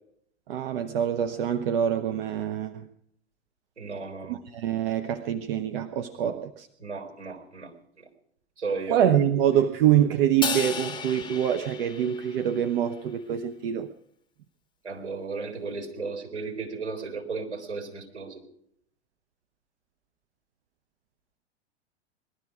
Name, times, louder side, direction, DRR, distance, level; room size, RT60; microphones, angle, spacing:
voice 1, 0.5-2.9 4.3-6.7 8.9-13.9, right 10 dB, 60° right, 8 dB, 1.0 m, -25 dB
voice 2, 3.8-4.4 6.2-6.4 6.8-7.7 8.6-9.0 14.8-18.4, right 4 dB, 85° right, 2 dB, 4.1 m, -34 dB
Crash cymbal, 10.4-12.8, left 6 dB, 15° left, 1.7 m, -33 dB
20.0 x 13.0 x 4.9 m, 0.70 s
figure-of-eight pair, 90°, 34 cm